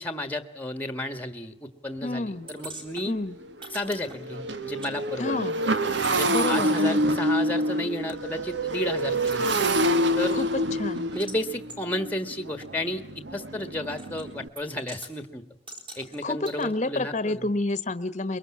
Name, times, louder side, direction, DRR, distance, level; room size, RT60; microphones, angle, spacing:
voice 1, 0.0-3.1 3.7-5.4 6.1-9.6 10.2-10.4 11.1-13.0 13.3-15.4 16.0-17.5, left 1 dB, 10° left, 10 dB, 1.5 m, -32 dB
Motorcycle, 1.9-2.0 2.4-2.6 2.9-14.5, right 1 dB, 70° right, 1.5 m, -27 dB
voice 2, 2.0-2.5 3.1-3.4 5.2-5.6 6.3-7.2 10.3-11.1 16.2-18.4, left 2 dB, 40° left, 13 dB, 1.2 m, -29 dB
sound 1, 2.5-4.9 5.2-8.2 8.7-8.8 9.0-9.7 10.2-11.4 11.7-11.8 12.6-12.7 14.0-14.3 14.6-15.1 15.7-16.6, right 2 dB, 30° right, 4.2 m, -45 dB
sound 2, 8.0-11.7, equal, 85° right, 6.1 m, -54 dB
23.0 x 23.0 x 8.6 m, 0.69 s
head